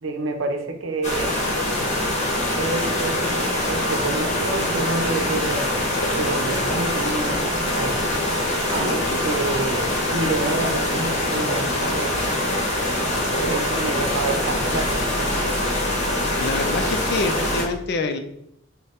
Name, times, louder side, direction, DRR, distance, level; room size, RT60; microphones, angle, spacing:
voice 1, 0.0-1.3 2.5-3.4 3.7-5.7 6.2-8.1 8.9-12.2 13.0-15.4, right 2 dB, 75° right, 5 dB, 0.6 m, -28 dB
sound 1, 1.0-17.6, left 1 dB, 35° left, 1.1 m, -24 dB
sound 2, 4.4-12.8, right 1 dB, 20° right, 1.2 m, -39 dB
voice 2, 16.4-18.2, left 3 dB, 55° left, 7 dB, 0.5 m, -26 dB
6.4 x 2.2 x 3.5 m, 0.75 s
head